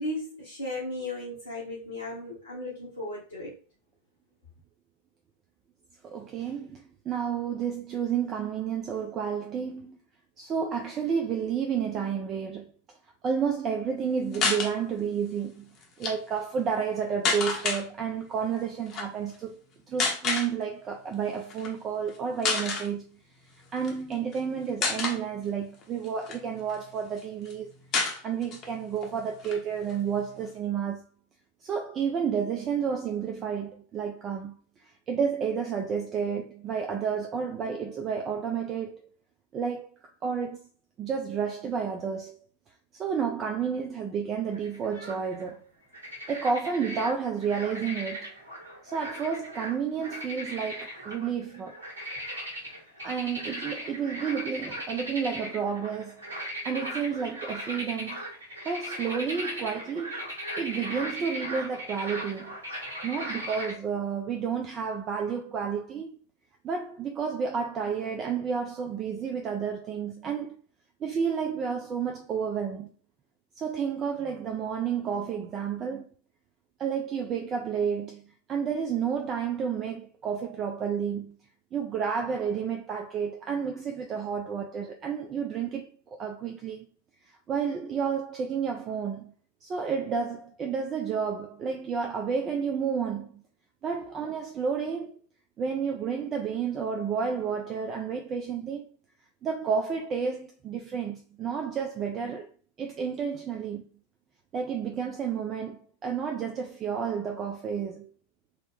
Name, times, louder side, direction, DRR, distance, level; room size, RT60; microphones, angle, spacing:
voice 1, 0.0-3.5, left 1 dB, 75° left, 1.0 m, -35 dB
voice 2, 6.0-10.0 10.4-12.7 13.2-19.6 19.9-23.0 23.7-27.7 28.2-31.0 31.6-34.5 35.1-39.1 39.5-39.9 40.2-40.7 41.0-42.4 42.9-45.7 46.3-48.3 48.8-51.7 53.0-58.2 58.6-60.1 60.6-62.6 63.0-66.1 66.6-70.5 71.0-72.9 73.6-76.1 76.8-81.4 81.7-85.9 86.2-86.9 87.5-89.3 89.6-93.4 93.8-95.1 95.6-98.9 99.4-102.5 102.8-103.8 104.5-108.1, right 6 dB, 25° right, 0.4 m, -31 dB
sound 1, 14.3-14.7 15.8-16.1 17.2-17.8 18.9-19.1 20.0-20.5 21.5-21.7 22.1-22.2 22.4-22.9 23.8-24.4 24.8-25.2 25.8-26.8 27.2-27.3 27.5-27.6 27.9-28.7 29.0-29.1 29.4-30.5, left 4 dB, 35° left, 0.7 m, -29 dB
sound 2, 44.5-45.5 45.9-47.1 47.4-63.7, equal, 75° right, 1.1 m, -38 dB
3.7 x 2.1 x 3.1 m
figure-of-eight pair, 90°, 0 cm